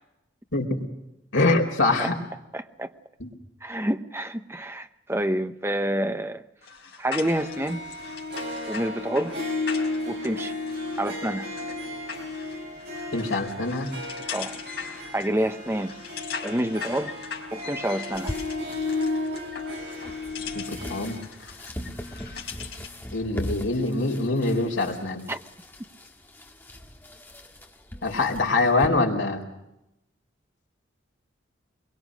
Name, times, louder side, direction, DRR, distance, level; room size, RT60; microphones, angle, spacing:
voice 1, 0.5-0.9 1.3-2.2 3.2-3.3 13.1-13.9 20.5-21.2 23.1-25.2 28.0-29.4, left 2 dB, 80° left, 4.3 m, -24 dB
voice 2, 2.5-2.9 3.6-6.4 7.0-7.8 8.7-9.3 10.1-10.5 11.0-11.5 14.3-14.6 15.1-15.9 16.4-17.1 17.5-18.3 25.3-25.4, right 1 dB, 10° right, 0.8 m, -28 dB
sound 1, 6.6-23.0, left 6 dB, 55° left, 3.7 m, -40 dB
Harp, 7.2-21.2, left 2 dB, 55° right, 5.5 m, -33 dB
sound 2, 18.1-28.9, equal, 10° left, 1.6 m, -40 dB
24.0 x 22.5 x 6.3 m
head